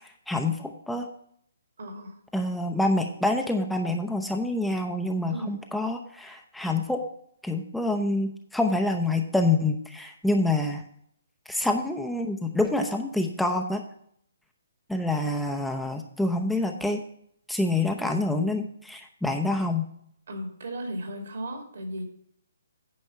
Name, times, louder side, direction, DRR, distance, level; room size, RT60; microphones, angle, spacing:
voice 1, 0.3-1.1 2.3-7.0 7.4-10.8 11.5-13.8 14.9-17.0 17.5-19.8, left 2 dB, ahead, 3 dB, 0.6 m, -27 dB
voice 2, 1.8-2.2 5.3-5.6 20.3-22.0, right 1 dB, 65° right, 3 dB, 2.4 m, -35 dB
9.4 x 5.3 x 5.7 m, 0.66 s
figure-of-eight pair, 135°, 0 cm